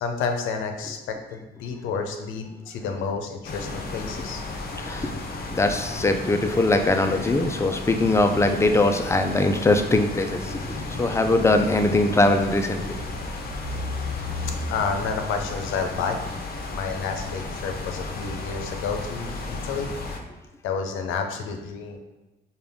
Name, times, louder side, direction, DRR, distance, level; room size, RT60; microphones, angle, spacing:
voice 1, 0.0-4.4 14.7-16.2 16.7-19.9 20.6-22.0, left 5 dB, 85° left, 4 dB, 0.6 m, -30 dB
sound 1, 3.4-20.2, left 2 dB, 50° left, 0.7 m, -33 dB
voice 2, 4.8-5.1 5.5-13.0, left 2 dB, 15° left, 6 dB, 0.4 m, -21 dB
5.2 x 2.4 x 3.5 m, 1.1 s
cardioid pair, 90°, 20 cm